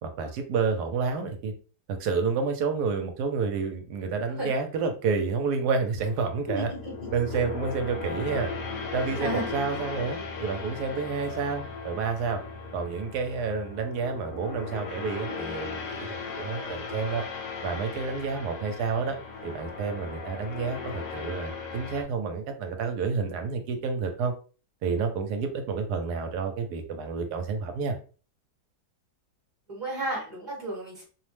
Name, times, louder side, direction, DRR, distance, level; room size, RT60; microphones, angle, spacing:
voice 1, 0.0-1.5 1.9-6.7 7.1-8.5 8.9-12.4 12.7-17.2 17.6-19.2 19.4-24.3 24.8-28.0, right 5 dB, 75° right, 6 dB, 1.1 m, -29 dB
sound 1, 6.0-22.0, left 4 dB, 80° left, 1.2 m, -37 dB
voice 2, 6.5-6.9 9.2-9.5 18.3-18.4 29.7-31.0, right 1 dB, 15° right, -4 dB, 0.9 m, -33 dB
2.8 x 2.1 x 3.1 m, 0.37 s
omnidirectional pair, 1.8 m